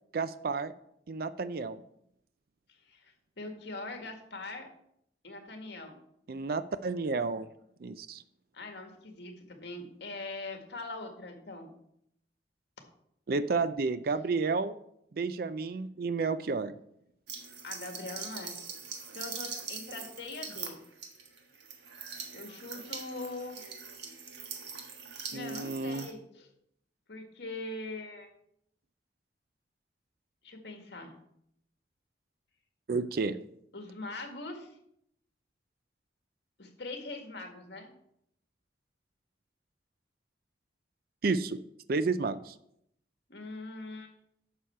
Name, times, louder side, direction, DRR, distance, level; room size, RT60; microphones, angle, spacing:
voice 1, 0.1-0.7 1.1-1.8 6.3-7.5 7.8-8.2 13.3-14.7 15.1-16.7 25.3-26.1 32.9-33.4 41.2-41.6 41.9-42.5, right 4 dB, 55° right, 13 dB, 0.4 m, -31 dB
voice 2, 2.7-4.7 5.2-5.9 8.5-11.8 17.6-18.6 19.1-20.8 22.3-23.6 25.3-26.5 27.1-28.3 30.4-31.2 33.7-34.8 36.6-37.9 43.3-44.1, left 2 dB, 70° left, 4 dB, 1.8 m, -42 dB
sound 1, 17.3-26.1, right 6 dB, 80° right, 1.5 m, -42 dB
11.0 x 6.9 x 4.5 m, 0.74 s
head